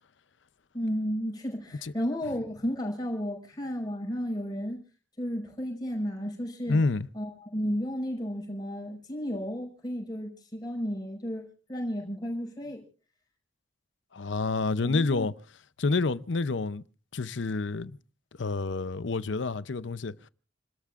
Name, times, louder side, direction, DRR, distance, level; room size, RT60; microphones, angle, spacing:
voice 1, 0.7-4.8 5.2-6.8 7.1-12.8 14.8-15.3, equal, 20° left, 5.5 m, -33 dB
voice 2, 6.7-7.1 14.1-15.3 15.8-16.8 17.1-18.0 18.4-20.3, left 3 dB, 75° left, 0.7 m, -28 dB
29.5 x 13.5 x 2.5 m
head